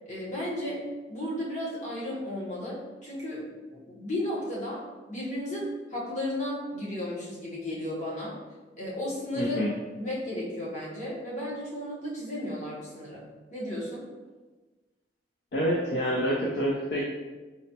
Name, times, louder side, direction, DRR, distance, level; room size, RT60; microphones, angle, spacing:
voice 1, 0.1-8.4 8.8-9.6 9.9-13.2 13.5-14.1, left 1 dB, 40° left, -6 dB, 0.9 m, -34 dB
voice 2, 9.4-9.7 15.5-17.0, equal, 60° left, -4 dB, 0.4 m, -27 dB
3.9 x 2.2 x 2.7 m, 1.3 s
head